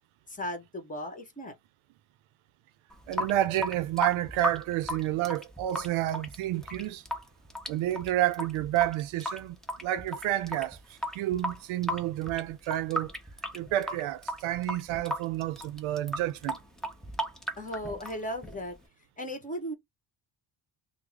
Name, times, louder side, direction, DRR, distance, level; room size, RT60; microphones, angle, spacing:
voice 1, 0.3-1.6 17.6-18.8 19.2-19.7, equal, 15° left, 1.0 m, -36 dB
Water tap faucet / Sink (filling or washing) / Drip, 2.9-18.8, equal, ahead, 0.5 m, -37 dB
voice 2, 3.1-7.0 7.7-9.6 9.8-13.1 13.5-16.6, right 14 dB, 80° right, 0.5 m, -30 dB
3.5 x 2.0 x 3.2 m
cardioid pair, 135°, 48 cm